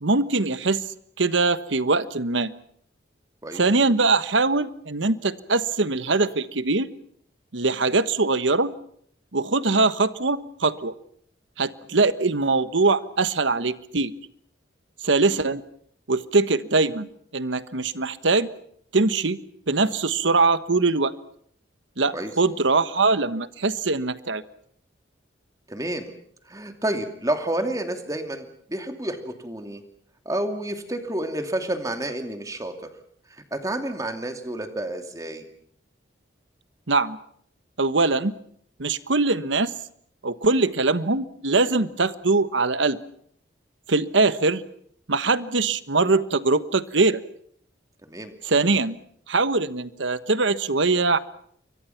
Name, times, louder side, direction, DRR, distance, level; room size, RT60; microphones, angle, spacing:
voice 1, 0.0-0.8 1.2-2.5 3.5-6.9 7.5-8.7 9.3-10.9 11.6-14.1 15.0-15.6 16.1-17.1 17.3-18.5 18.9-19.4 19.7-21.1 22.0-24.4 36.9-37.2 37.8-38.3 38.8-39.7 40.2-43.0 43.9-44.6 45.1-47.2 48.4-48.9 49.3-51.2, right 3 dB, 75° right, 14 dB, 1.2 m, -22 dB
voice 2, 25.7-26.1 26.5-29.8 30.2-32.9 33.3-35.4 48.0-48.3, right 1 dB, 20° right, 6 dB, 2.6 m, -30 dB
29.0 x 23.5 x 5.9 m, 0.64 s
head